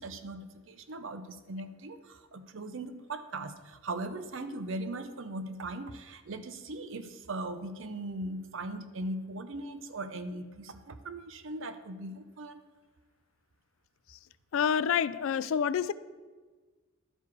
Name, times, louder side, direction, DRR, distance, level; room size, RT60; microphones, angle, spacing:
voice 1, 0.0-12.6, right 2 dB, 65° right, 10 dB, 0.6 m, -39 dB
voice 2, 14.5-15.9, left 7 dB, 70° left, 16 dB, 0.3 m, -28 dB
12.0 x 4.8 x 4.7 m, 1.4 s
head